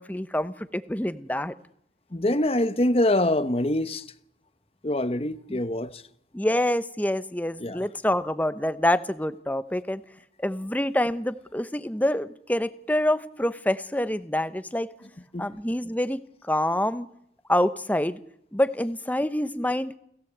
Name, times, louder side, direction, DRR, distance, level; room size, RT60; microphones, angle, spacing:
voice 1, 0.0-1.5 5.5-5.6 6.3-10.0 10.4-14.9 15.4-16.2 16.4-17.1 17.5-18.2 18.5-19.9, left 1 dB, 10° left, 0.9 m, -26 dB
voice 2, 2.1-4.0 4.8-6.0 7.6-7.9 15.3-15.5, left 1 dB, 30° left, 1.0 m, -24 dB
29.0 x 17.0 x 8.0 m
head